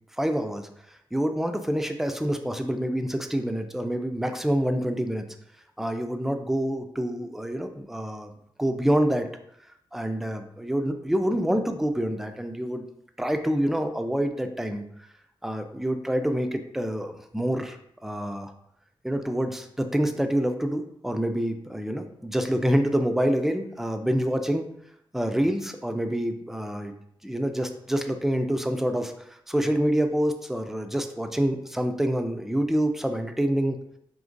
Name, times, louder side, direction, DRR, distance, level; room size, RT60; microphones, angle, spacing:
voice 1, 0.2-0.7 1.1-5.2 5.8-8.3 8.6-9.3 9.9-12.9 13.2-14.8 15.4-17.8 18.0-18.5 19.0-24.7 25.1-26.9 27.2-33.8, equal, 5° right, 7 dB, 0.3 m, -27 dB
5.0 x 2.9 x 2.5 m, 0.74 s
wide cardioid pair, 130°, 9 cm